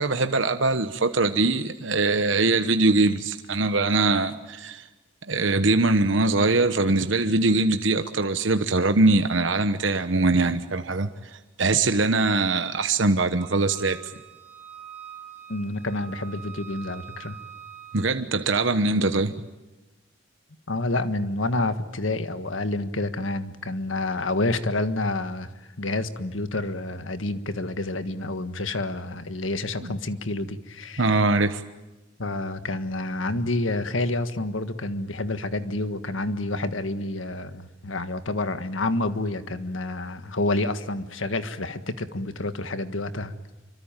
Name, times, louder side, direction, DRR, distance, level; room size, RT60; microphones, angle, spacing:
voice 1, 0.0-4.9 5.3-14.0 17.9-19.3 29.8-29.9 31.0-31.6, right 3 dB, 70° right, 8 dB, 1.2 m, -22 dB
Wind instrument woodwind instrument, 13.4-18.1, right 8 dB, 10° right, 4.2 m, -44 dB
voice 2, 15.5-17.3 20.7-25.5 25.8-31.2 32.2-43.3, left 2 dB, 80° left, 10 dB, 1.6 m, -28 dB
27.0 x 24.5 x 9.0 m, 1.1 s
head